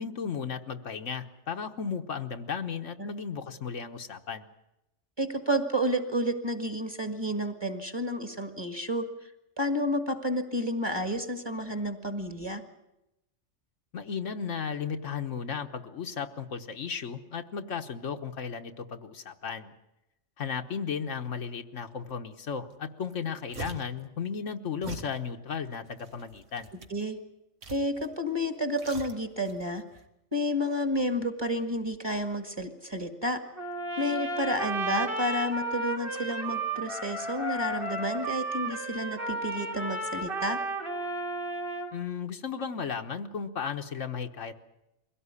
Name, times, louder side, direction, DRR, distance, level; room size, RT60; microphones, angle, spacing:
voice 1, 0.0-4.5 13.9-19.7 20.4-26.7 41.9-44.6, left 6 dB, 70° left, 6 dB, 1.4 m, -35 dB
voice 2, 5.2-9.1 9.6-12.6 26.9-27.2 27.7-29.8 30.3-33.4 34.0-40.6, equal, 20° right, 8 dB, 1.8 m, -30 dB
sound 1, 22.7-22.8 23.0-24.0 24.8-25.2 25.8-27.0 27.6-28.2 28.4-29.6 29.9-30.0, right 4 dB, 70° right, 2.1 m, -42 dB
Trumpet, 33.6-41.9, right 2 dB, 45° right, 3.0 m, -33 dB
23.0 x 17.0 x 9.7 m, 0.90 s
omnidirectional pair, 1.3 m